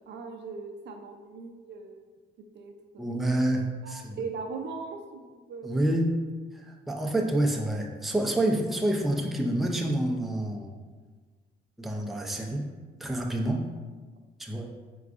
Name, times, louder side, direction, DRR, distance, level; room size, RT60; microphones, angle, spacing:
voice 1, 0.1-2.0 2.5-3.1 3.8-5.9, right 4 dB, 60° right, 4 dB, 0.5 m, -39 dB
voice 2, 3.0-4.2 5.6-6.1 6.5-10.7 11.8-12.6 13.0-13.6 14.4-14.7, right 1 dB, ahead, 0 dB, 0.5 m, -28 dB
4.5 x 3.8 x 2.5 m, 1.4 s
cardioid pair, 90°, 20 cm